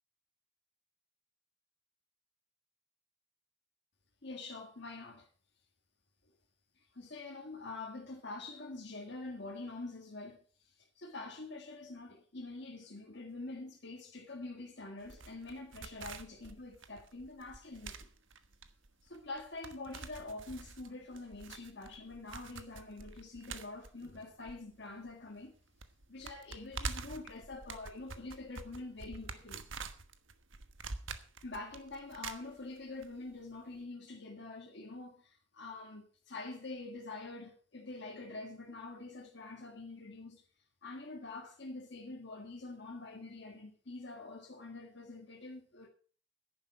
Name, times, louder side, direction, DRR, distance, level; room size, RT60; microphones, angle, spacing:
voice 1, 4.2-5.3 6.8-18.1 19.0-25.5 26.1-29.7 31.4-40.4 40.8-45.9, left 2 dB, 60° left, 1.7 m, -46 dB
sound 1, 15.0-25.1 25.4-25.5 25.8-33.1 33.3-33.4, right 4 dB, 80° right, 1.3 m, -46 dB
10.5 x 10.5 x 5.7 m
head